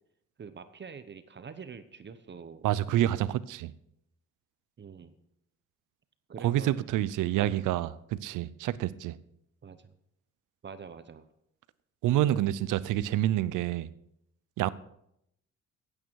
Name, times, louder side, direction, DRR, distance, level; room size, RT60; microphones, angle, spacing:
voice 1, 0.4-2.7 4.8-5.1 6.3-6.8 7.3-7.5 9.6-9.9 10.6-11.3, right 6 dB, 35° right, 0.9 m, -45 dB
voice 2, 2.6-3.7 6.4-7.9 8.2-9.2 12.0-13.9 14.6-14.7, right 13 dB, 85° right, 0.6 m, -27 dB
15.5 x 8.8 x 4.7 m
cardioid pair, 90°, 30 cm